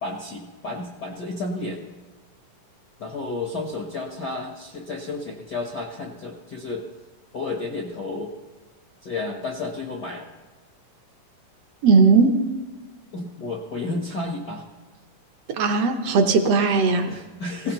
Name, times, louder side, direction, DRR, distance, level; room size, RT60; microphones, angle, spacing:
voice 1, 0.0-1.8 3.0-6.9 7.3-8.3 9.0-10.3 13.1-14.7 17.1-17.7, left 3 dB, 65° left, 1 dB, 1.0 m, -31 dB
voice 2, 11.8-12.4 15.6-17.1, right 4 dB, 70° right, 6 dB, 1.6 m, -18 dB
18.5 x 17.0 x 3.0 m, 1.3 s
omnidirectional pair, 3.7 m